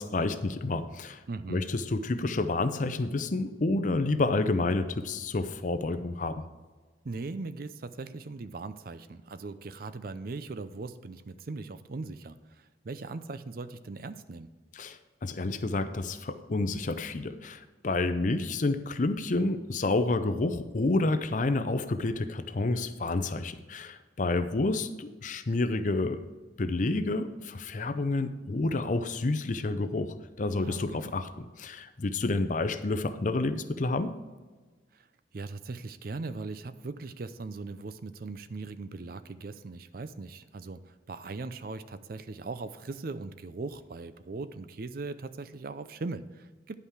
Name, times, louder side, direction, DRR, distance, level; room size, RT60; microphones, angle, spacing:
voice 1, 0.0-1.2 1.5-6.4 14.8-26.2 26.6-34.1, left 2 dB, 40° left, 11 dB, 0.5 m, -29 dB
voice 2, 1.3-1.7 7.0-14.5 30.6-31.2 34.9-35.1 35.3-46.8, right 3 dB, 50° right, 12 dB, 0.4 m, -39 dB
10.0 x 5.6 x 4.6 m, 1.3 s
head